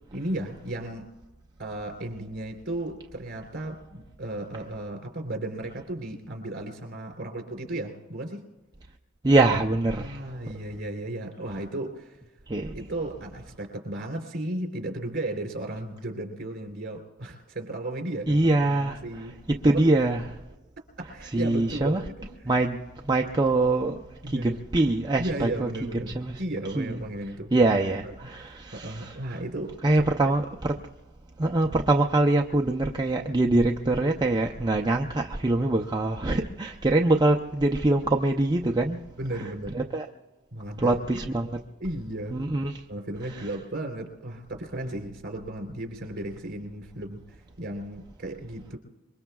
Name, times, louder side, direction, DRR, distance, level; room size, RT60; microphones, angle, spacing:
voice 1, 0.1-1.1 1.6-8.5 9.9-12.2 12.7-19.3 19.6-19.9 21.0-22.3 24.2-24.6 25.2-27.5 27.8-28.1 28.4-30.4 31.6-31.8 39.2-39.8 40.5-41.2 41.8-42.4 42.9-48.8, right 1 dB, 55° right, 3.4 m, -35 dB
voice 2, 9.2-10.2 12.5-12.8 18.3-19.0 19.5-20.2 21.3-22.0 22.5-22.8 23.0-24.0 24.3-25.7 26.0-26.4 26.7-27.0 27.5-29.2 29.8-30.7 31.4-39.0 39.7-40.1 40.8-41.5 42.3-42.8, right 2 dB, 20° right, 0.6 m, -24 dB
26.0 x 23.0 x 2.3 m
head